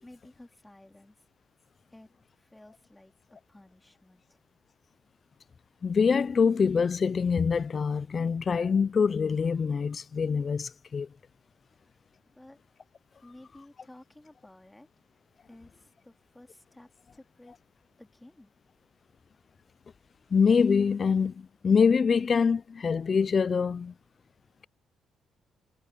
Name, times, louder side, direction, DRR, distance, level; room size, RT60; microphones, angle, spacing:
voice 1, 0.0-1.1 1.9-3.1 3.5-4.4 11.8-12.0 12.3-12.6 13.2-14.9 15.5-17.6 18.0-18.5, left 1 dB, 10° left, 3.2 m, -54 dB
voice 2, 5.8-11.1 20.3-23.9, left 6 dB, 40° left, 0.5 m, -25 dB
cardioid pair, 90°, 0 cm